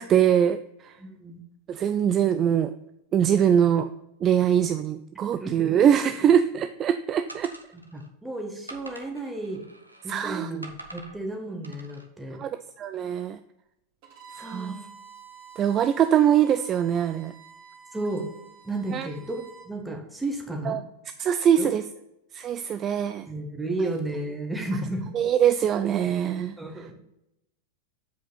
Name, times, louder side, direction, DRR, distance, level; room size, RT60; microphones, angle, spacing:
voice 1, 0.0-1.0 1.7-2.7 3.1-3.9 4.2-7.5 10.0-10.7 12.4-13.4 14.4-14.8 15.6-17.3 18.9-19.1 20.7-20.8 21.2-21.9 22.3-23.3 23.8-23.9 25.1-26.8, right 9 dB, 30° right, 10 dB, 0.3 m, -23 dB
voice 2, 1.0-1.4 5.3-5.5 7.9-9.6 10.0-12.4 14.4-14.9 17.9-18.3 18.6-20.8 21.6-21.7 23.3-25.0 26.6-26.9, right 2 dB, 5° right, 1 dB, 1.5 m, -33 dB
sound 1, 7.3-8.1 8.7-10.2 10.6-11.2 11.6-12.1, right 2 dB, 85° right, 0.8 m, -45 dB
Bowed string instrument, 14.0-19.7, right 6 dB, 45° right, 2.6 m, -49 dB
8.0 x 4.9 x 4.1 m, 0.85 s
figure-of-eight pair, 90°, 0 cm